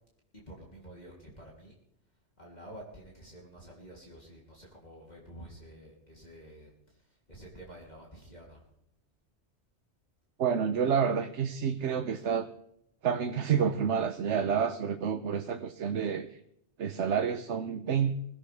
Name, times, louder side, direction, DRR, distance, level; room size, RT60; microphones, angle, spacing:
voice 1, 0.3-1.7 2.4-8.7 12.1-12.3, right 1 dB, 40° left, -3 dB, 3.4 m, -50 dB
voice 2, 10.4-12.5 13.0-16.3 16.8-18.1, right 7 dB, 85° right, 8 dB, 1.1 m, -29 dB
22.5 x 16.0 x 3.5 m, 0.76 s
omnidirectional pair, 1.2 m